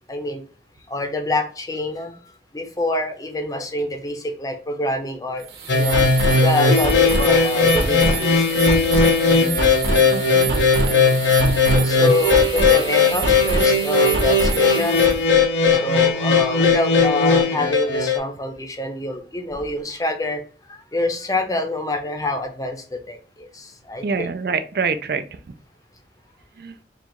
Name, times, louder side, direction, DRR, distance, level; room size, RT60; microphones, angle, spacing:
voice 1, 0.1-0.4 0.9-2.2 2.5-5.4 5.7-6.0 6.4-8.9 10.9-11.2 11.5-15.1 15.7-20.4 20.7-24.0, left 1 dB, 20° left, 4 dB, 0.6 m, -26 dB
sound 1, 5.4-15.2, right 2 dB, 75° right, 0.9 m, -26 dB
sound 2, 5.7-18.2, left 4 dB, 85° left, 0.7 m, -18 dB
voice 2, 10.1-10.5 24.0-25.4 26.6-26.8, right 5 dB, 55° right, 10 dB, 0.4 m, -26 dB
3.9 x 2.4 x 4.4 m, 0.39 s
head